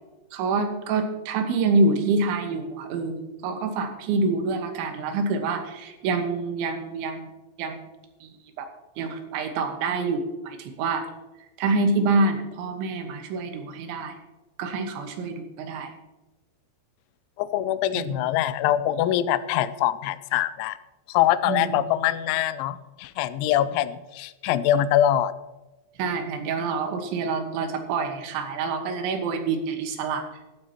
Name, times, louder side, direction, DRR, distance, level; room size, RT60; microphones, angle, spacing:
voice 1, 0.3-7.2 7.6-7.8 8.2-8.3 8.6-8.7 9.0-11.1 11.6-14.1 14.6-15.9 17.9-18.1 21.5-21.7 26.0-30.3, right 3 dB, 85° right, 5 dB, 3.6 m, -26 dB
voice 2, 17.4-20.8 21.1-25.3, left 12 dB, 85° left, 14 dB, 2.9 m, -23 dB
15.0 x 12.5 x 2.9 m, 1.1 s
omnidirectional pair, 5.3 m